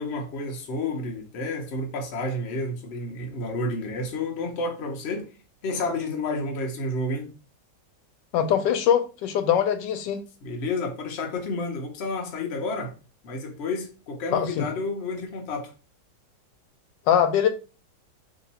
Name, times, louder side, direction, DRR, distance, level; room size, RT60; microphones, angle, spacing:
voice 1, 0.0-5.3 5.6-7.3 10.4-12.9 13.2-15.7, left 2 dB, 50° left, 0.8 m, -30 dB
voice 2, 8.3-10.2 14.3-14.7 17.1-17.5, left 9 dB, 85° left, 1.3 m, -22 dB
3.0 x 2.8 x 4.0 m
omnidirectional pair, 1.9 m